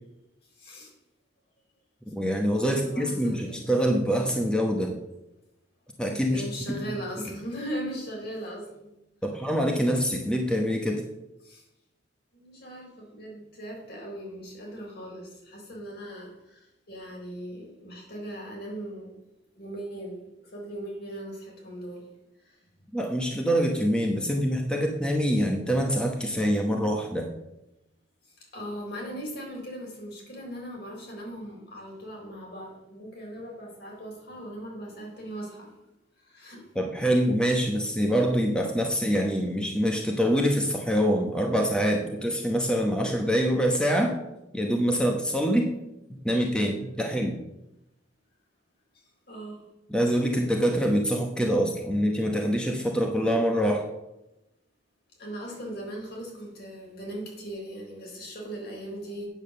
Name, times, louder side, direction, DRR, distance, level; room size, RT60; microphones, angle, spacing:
voice 1, 0.6-0.9 2.6-3.6 6.3-8.9 11.4-11.6 12.3-16.6 16.9-19.1 19.5-20.2 20.5-22.1 22.4-22.6 28.5-35.7 36.2-36.7 49.3-49.6 55.2-59.3, right 1 dB, 60° left, -1 dB, 3.9 m, -39 dB
voice 2, 2.1-4.9 6.0-6.8 9.2-11.0 22.9-27.3 36.8-44.1 44.5-45.7 46.2-47.4 49.9-53.8, equal, 5° left, 1 dB, 1.0 m, -25 dB
8.8 x 7.2 x 6.7 m, 0.92 s
head